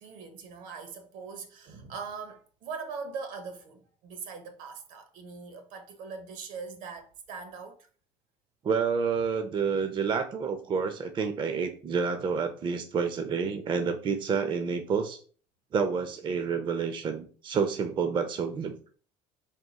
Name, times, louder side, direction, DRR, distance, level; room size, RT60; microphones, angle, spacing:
voice 1, 0.0-7.9, right 5 dB, 65° right, 0.9 m, -41 dB
voice 2, 8.6-15.2 15.7-18.8, right 6 dB, 35° right, 0.5 m, -29 dB
3.6 x 2.4 x 4.0 m
supercardioid pair, 105°, 14 cm